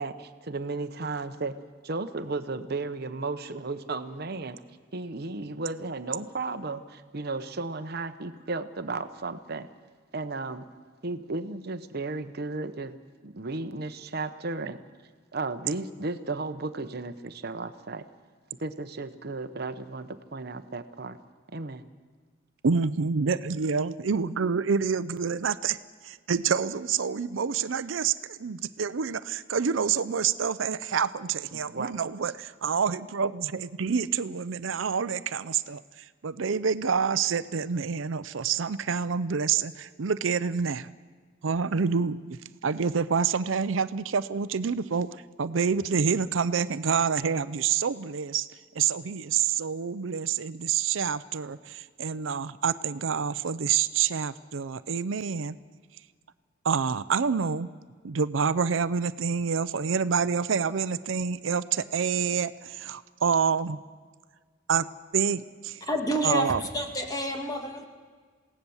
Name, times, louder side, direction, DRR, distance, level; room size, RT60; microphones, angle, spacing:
voice 1, 0.0-1.6 1.8-4.6 4.9-9.7 10.1-10.6 11.0-13.0 13.2-14.8 15.3-18.1 18.6-21.2 21.5-21.8 23.8-24.0 31.5-31.9 32.2-32.3, right 3 dB, 55° right, 10 dB, 0.9 m, -34 dB
voice 2, 22.6-25.8 26.0-35.8 36.2-40.9 41.4-48.5 48.8-55.6 56.6-57.7 58.0-63.8 64.7-64.9 65.1-65.8 66.2-66.6, right 6 dB, 80° right, 15 dB, 0.6 m, -27 dB
voice 3, 65.9-67.9, equal, 20° left, 4 dB, 2.0 m, -29 dB
27.5 x 17.5 x 7.1 m, 1.5 s
head